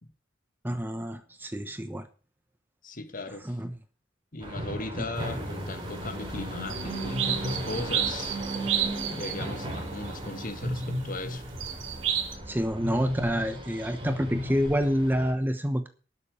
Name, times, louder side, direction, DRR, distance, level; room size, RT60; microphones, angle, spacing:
voice 1, 0.6-2.1 3.4-3.7 12.5-15.9, equal, 10° right, 0.9 m, -28 dB
voice 2, 2.8-3.6 4.3-8.4 9.1-11.5, left 2 dB, 45° left, 1.7 m, -38 dB
sound 1, 4.4-15.3, equal, 25° right, 3.7 m, -35 dB
sound 2, 6.7-10.9 11.6-12.4, right 9 dB, 80° right, 2.6 m, -31 dB
12.0 x 7.1 x 8.2 m
head